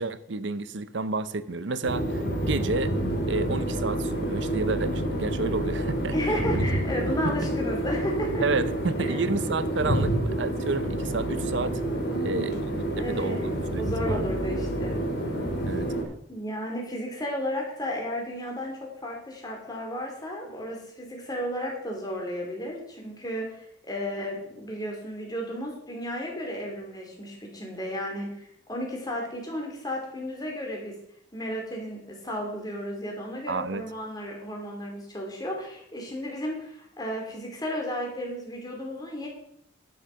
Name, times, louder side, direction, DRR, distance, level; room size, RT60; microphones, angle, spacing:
voice 1, 0.0-2.9 3.3-6.1 6.5-6.6 7.0-7.1 7.4-7.5 8.4-11.8 12.2-12.6 13.1-14.3 15.7-15.9 33.5-33.8, right 3 dB, 65° right, 14 dB, 0.7 m, -30 dB
sound 1, 1.8-16.0, right 1 dB, 60° left, 2.7 m, -28 dB
voice 2, 6.1-8.6 9.0-9.4 12.1-15.0 16.3-30.9 31.3-39.3, equal, 20° left, 0 dB, 3.0 m, -33 dB
11.5 x 6.7 x 5.7 m, 0.74 s
head